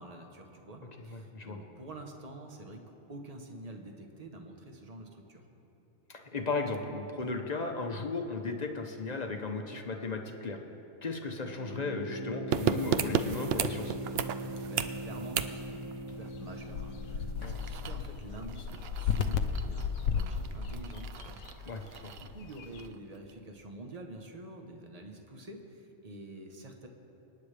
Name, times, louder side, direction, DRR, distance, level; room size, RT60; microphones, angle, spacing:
voice 1, 0.0-2.8 3.1-5.4 14.6-21.4 21.7-21.9 22.2-26.9, right 1 dB, 30° right, 3 dB, 1.1 m, -47 dB
voice 2, 1.1-1.6 6.1-10.6 11.0-14.0 17.4-17.6 21.7-22.1, left 3 dB, 35° left, 3 dB, 0.9 m, -36 dB
sound 1, 11.5-18.1, right 1 dB, 80° right, 2.7 m, -41 dB
sound 2, 12.5-23.0 23.3-23.4, right 8 dB, 65° right, 0.7 m, -36 dB
sound 3, 16.1-22.9, left 6 dB, 75° left, 1.0 m, -35 dB
26.0 x 9.6 x 3.4 m, 3.0 s
omnidirectional pair, 1.4 m